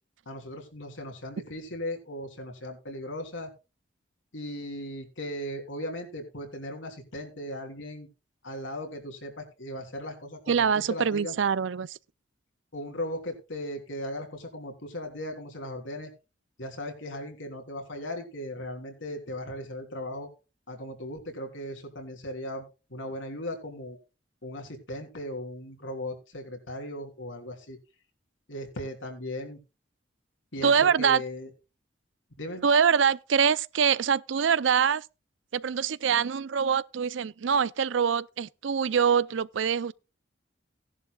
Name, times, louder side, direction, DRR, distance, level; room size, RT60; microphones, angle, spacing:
voice 1, 0.2-3.5 4.3-8.1 8.4-11.4 12.7-16.1 16.6-20.3 20.7-22.6 22.9-24.0 24.4-27.8 28.5-29.6 30.5-31.5 32.4-32.6, left 1 dB, 90° left, 3.3 m, -37 dB
voice 2, 10.5-12.0 30.6-31.2 32.6-35.0 35.5-39.9, right 7 dB, 80° right, 0.5 m, -24 dB
17.0 x 11.0 x 2.3 m
head